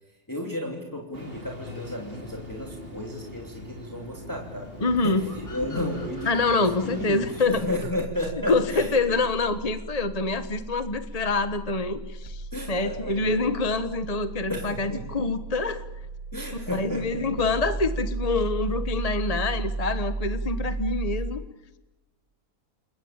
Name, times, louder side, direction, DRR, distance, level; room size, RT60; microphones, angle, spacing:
voice 1, 0.3-9.2 12.5-13.4 14.5-15.1 16.3-17.5, left 1 dB, 15° left, 0 dB, 3.1 m, -33 dB
Engine starting, 1.1-7.4, left 1 dB, 40° right, 4.0 m, -41 dB
voice 2, 4.8-5.2 6.3-7.6 8.5-15.8 16.7-21.4, left 3 dB, 30° left, 10 dB, 1.1 m, -26 dB
sound 1, 5.2-8.6, left 2 dB, 55° left, 6.6 m, -49 dB
sound 2, 7.4-21.3, right 3 dB, 85° right, 3.3 m, -35 dB
29.5 x 21.5 x 8.9 m, 1.1 s
omnidirectional pair, 1.5 m